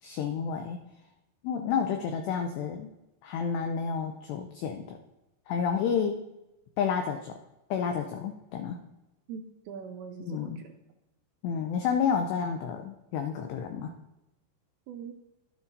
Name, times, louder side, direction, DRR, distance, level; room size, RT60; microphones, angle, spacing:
voice 1, 0.0-0.8 1.4-2.9 3.2-5.0 5.5-6.2 6.8-7.3 7.7-8.8 10.2-10.6 11.4-13.9, left 6 dB, 85° left, 5 dB, 2.4 m, -30 dB
voice 2, 9.3-10.7 14.9-15.1, right 6 dB, 85° right, 2 dB, 2.6 m, -42 dB
11.5 x 9.7 x 2.6 m, 0.95 s
omnidirectional pair, 5.5 m